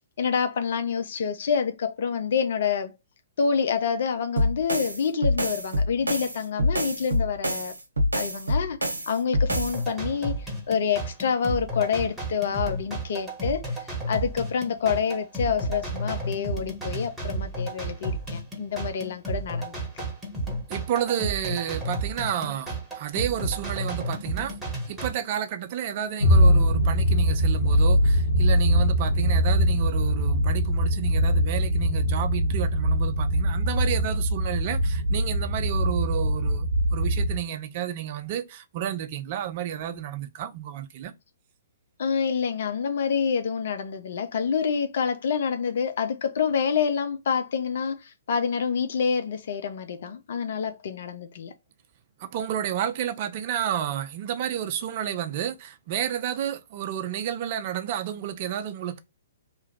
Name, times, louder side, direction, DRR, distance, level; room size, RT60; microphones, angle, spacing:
voice 1, 0.2-2.9 3.4-7.7 8.1-8.8 9.1-19.8 42.0-51.5, left 6 dB, 55° left, 0.5 m, -27 dB
sound 1, 4.4-9.8, left 1 dB, 80° right, 0.6 m, -26 dB
sound 2, 9.5-25.1, right 1 dB, 5° right, 1.3 m, -32 dB
voice 2, 20.7-24.6 24.9-41.1 52.2-59.0, right 10 dB, 40° right, 0.6 m, -31 dB
sound 3, 26.2-37.4, equal, 75° left, 1.2 m, -22 dB
3.0 x 2.4 x 4.2 m
figure-of-eight pair, 120°, 0 cm